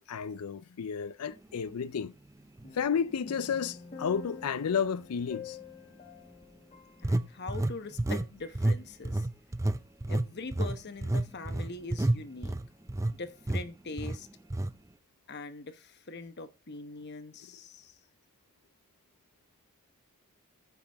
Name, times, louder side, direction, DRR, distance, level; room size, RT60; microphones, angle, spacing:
voice 1, 0.0-2.1 2.7-5.6, left 7 dB, 85° left, 0.5 m, -32 dB
sound 1, 2.6-8.1 8.4-8.6, left 5 dB, 30° left, 1.2 m, -48 dB
sound 2, 2.6-2.7 3.3-3.5 7.0-8.3 8.6-8.8 9.1-13.2 13.5-13.7 14.0-14.2 14.5-14.7, right 1 dB, 15° right, 0.4 m, -29 dB
voice 2, 7.0-9.2 10.1-12.6 13.2-14.3 15.3-17.9, left 3 dB, 50° left, 1.0 m, -42 dB
14.0 x 6.0 x 3.4 m
head